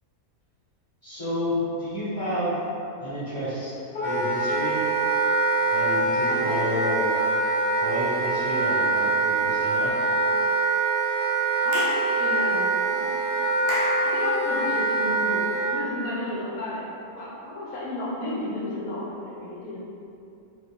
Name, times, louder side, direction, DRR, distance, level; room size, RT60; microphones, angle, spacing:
voice 1, 1.0-2.5 3.0-3.7 4.0-4.8 5.7-7.1 7.7-9.9, left 1 dB, 30° left, -14 dB, 1.1 m, -30 dB
Wind instrument woodwind instrument, 3.9-15.8, right 3 dB, 55° left, 0.7 m, -24 dB
voice 2, 11.6-13.0 14.0-15.4 15.7-16.8 17.1-19.8, left 1 dB, 85° left, -6 dB, 1.1 m, -33 dB
Clapping / Chirp tweet, 11.7-12.0 13.7-14.0, right 2 dB, 75° right, 0.9 m, -30 dB
2.9 x 2.5 x 3.5 m, 2.7 s
omnidirectional pair, 1.5 m